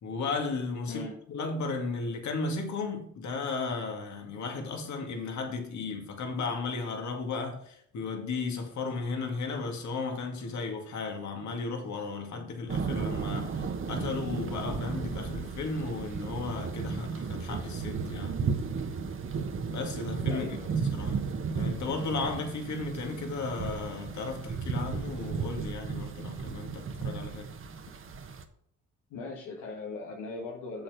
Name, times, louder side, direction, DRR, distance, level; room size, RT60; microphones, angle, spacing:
voice 1, 0.0-18.4 19.7-20.6 20.9-21.2 21.5-27.5, left 4 dB, 70° left, 2.3 m, -35 dB
voice 2, 0.9-1.2 20.3-20.7 29.1-30.8, left 3 dB, 85° left, 1.7 m, -39 dB
sound 1, 12.7-28.4, right 5 dB, 45° right, 1.2 m, -34 dB
7.4 x 6.9 x 5.1 m
cardioid pair, 90°, 30 cm